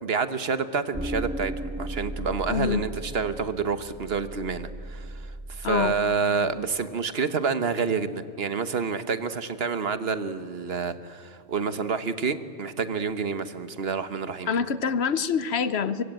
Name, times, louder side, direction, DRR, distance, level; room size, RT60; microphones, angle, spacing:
voice 1, 0.0-14.5, right 5 dB, 70° right, 11 dB, 1.4 m, -28 dB
sound 1, 0.9-6.0, right 1 dB, 10° right, 1.3 m, -36 dB
voice 2, 2.5-2.8 5.6-5.9 14.5-16.0, left 6 dB, 85° left, 14 dB, 1.2 m, -25 dB
23.5 x 23.5 x 9.0 m, 2.4 s
omnidirectional pair, 1.1 m